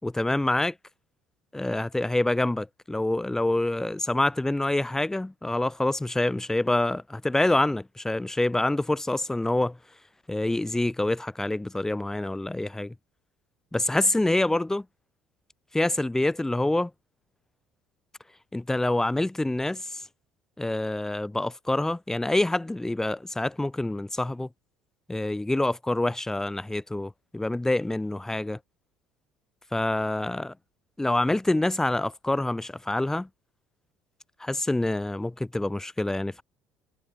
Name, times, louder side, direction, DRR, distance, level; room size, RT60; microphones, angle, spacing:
voice 1, 0.0-0.7 1.5-9.8 10.3-12.9 13.7-14.8 15.7-16.9 18.5-20.0 20.6-24.5 25.1-28.6 29.7-30.5 31.0-33.3 34.4-36.4, left 2 dB, 10° left, 3.5 m, -26 dB
figure-of-eight pair, 60°, 5 cm